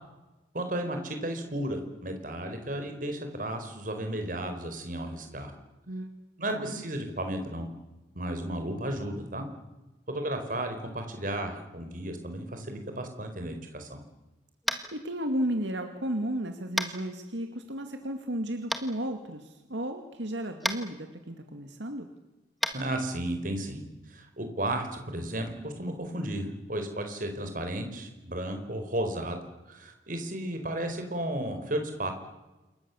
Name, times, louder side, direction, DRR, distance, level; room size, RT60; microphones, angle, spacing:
voice 1, 0.5-5.5 6.4-7.7 8.1-9.4 10.1-14.0 22.7-23.8 24.1-29.4 29.6-32.1, right 1 dB, 45° right, 5 dB, 4.7 m, -33 dB
Tap, 14.6-14.9 16.8-16.9 18.7-18.8 20.6-20.8 22.6-22.7, equal, ahead, 1.7 m, -29 dB
voice 2, 14.7-22.1, right 1 dB, 80° right, 5 dB, 2.3 m, -34 dB
28.0 x 23.0 x 7.3 m, 1.1 s
head